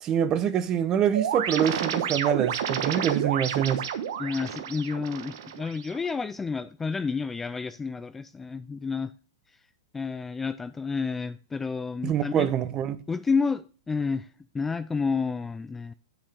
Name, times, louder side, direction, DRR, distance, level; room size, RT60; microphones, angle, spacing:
voice 1, 0.0-3.8 12.0-13.0, right 9 dB, 25° right, 0.9 m, -25 dB
sound 1, 1.1-6.1, right 8 dB, 65° right, 1.2 m, -30 dB
voice 2, 4.2-9.1 9.9-12.5 13.1-14.3 14.5-15.9, left 4 dB, 10° left, 0.3 m, -30 dB
8.1 x 5.8 x 5.2 m
hypercardioid pair, 140°, 2 cm